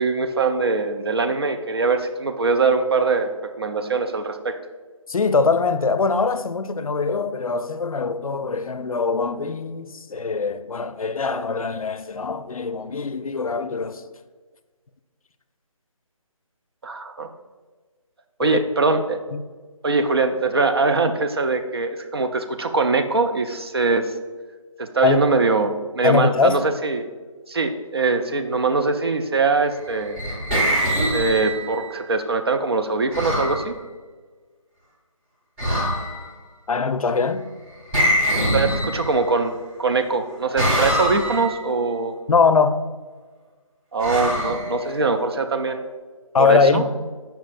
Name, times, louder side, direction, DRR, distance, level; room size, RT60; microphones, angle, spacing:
voice 1, 0.0-4.6 16.8-17.3 18.4-19.2 19.8-24.1 24.8-27.1 27.5-30.2 31.1-33.7 38.5-39.5 39.8-42.1 43.9-45.9 46.4-46.9, right 3 dB, 45° right, 0.5 m, -22 dB
voice 2, 5.1-14.0 18.4-18.6 19.3-19.4 25.0-25.3 26.0-26.6 36.7-37.4 42.3-42.8 46.3-46.9, left 4 dB, 85° left, 0.5 m, -22 dB
sound 1, 29.9-31.9 33.1-33.6 35.6-36.3 37.9-39.4 40.6-41.6 44.0-45.2, equal, 20° right, 1.4 m, -23 dB
7.2 x 5.6 x 2.5 m
figure-of-eight pair, 160°, 18 cm